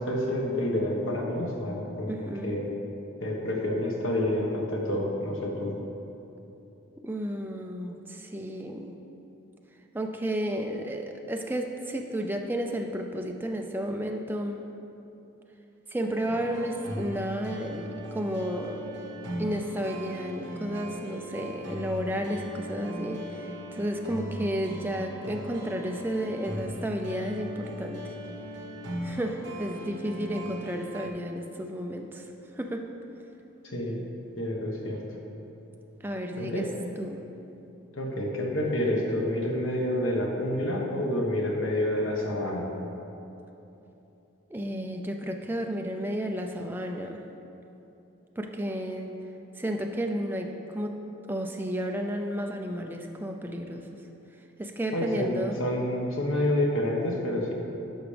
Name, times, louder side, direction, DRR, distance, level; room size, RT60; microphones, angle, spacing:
voice 1, 0.0-2.7 3.2-5.7 33.6-34.0 34.4-35.0 36.4-36.7 37.9-42.7 54.9-57.5, left 1 dB, 75° left, -1 dB, 1.3 m, -28 dB
voice 2, 2.1-2.6 7.0-8.9 9.9-14.6 15.9-18.8 19.4-28.1 29.0-32.3 32.5-32.9 36.0-36.7 37.0-37.2 44.5-47.2 48.4-49.1 49.5-50.9 51.3-54.0 54.6-55.6, equal, 10° right, 3 dB, 0.4 m, -32 dB
sound 1, 16.3-31.1, equal, 65° right, 1.0 m, -39 dB
10.5 x 6.1 x 3.4 m, 2.9 s
head